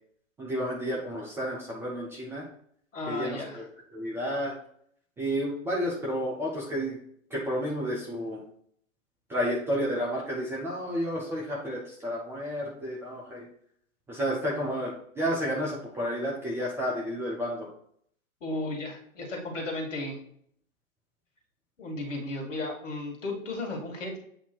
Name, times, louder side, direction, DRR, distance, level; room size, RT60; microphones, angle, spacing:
voice 1, 0.4-2.4 3.1-3.7 3.9-4.5 5.2-7.0 7.3-8.4 9.3-13.4 14.1-17.7, equal, 5° right, -4 dB, 0.5 m, -31 dB
voice 2, 2.9-3.6 18.4-20.2 21.8-24.2, left 2 dB, 65° left, 1 dB, 1.9 m, -34 dB
7.8 x 2.8 x 4.4 m, 0.65 s
figure-of-eight pair, 110°, 41 cm